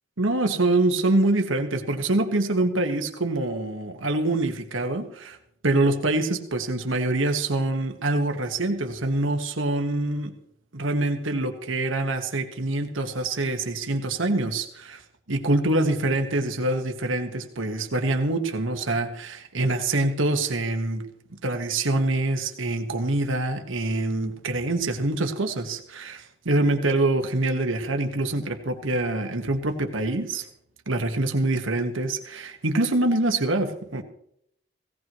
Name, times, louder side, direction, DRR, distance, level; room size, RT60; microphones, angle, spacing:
voice 1, 0.2-5.4 5.6-10.3 10.7-15.0 15.3-21.1 21.4-30.5 30.9-34.0, right 2 dB, 85° right, 5 dB, 1.5 m, -25 dB
17.5 x 17.5 x 3.1 m, 0.71 s
head